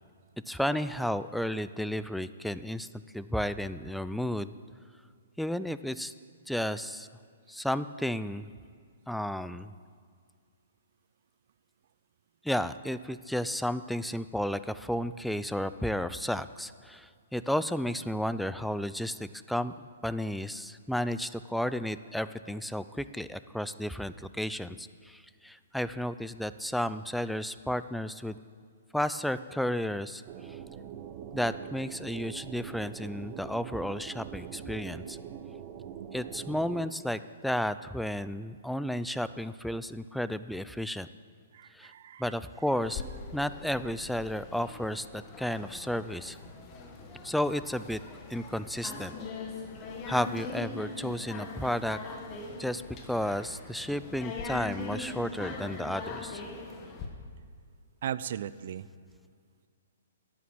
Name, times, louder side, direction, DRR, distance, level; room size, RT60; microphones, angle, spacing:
voice 1, 0.5-2.9 3.1-4.5 5.4-6.1 6.5-7.1 7.5-8.5 9.1-9.7 12.4-19.7 20.0-28.4 28.9-30.2 31.3-35.2 36.1-41.1 41.7-41.9 42.2-43.0 43.3-46.4 47.2-48.0 48.3-49.1 50.1-52.0 52.6-52.8 53.1-56.4, equal, ahead, 13 dB, 0.4 m, -32 dB
sound 1, 30.2-36.9, right 9 dB, 35° right, 1.0 m, -43 dB
voice 2, 41.5-42.3 58.0-58.9, right 10 dB, 55° right, 17 dB, 0.5 m, -37 dB
sound 2, 42.8-57.1, left 3 dB, 30° left, 1.6 m, -41 dB
11.0 x 8.6 x 7.3 m, 2.1 s
hypercardioid pair, 125°, 0 cm